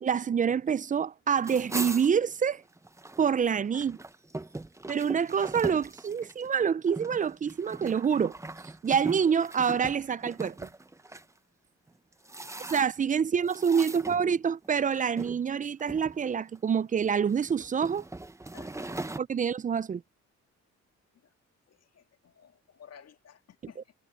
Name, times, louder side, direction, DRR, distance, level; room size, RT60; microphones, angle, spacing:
voice 1, 0.0-2.6 3.2-4.0 4.9-8.4 8.8-10.7 12.7-18.0 19.2-20.0, right 7 dB, 25° right, 0.4 m, -27 dB
sound 1, 1.4-3.3 3.7-11.3 11.9-13.1 13.5-14.7 15.2-15.4 15.8-16.6 17.2-19.2, right 2 dB, 10° right, 0.8 m, -40 dB
voice 2, 12.4-12.8 18.5-19.1 21.1-21.3 21.7-23.9, left 8 dB, 55° left, 2.0 m, -54 dB
cardioid pair, 90°, 30 cm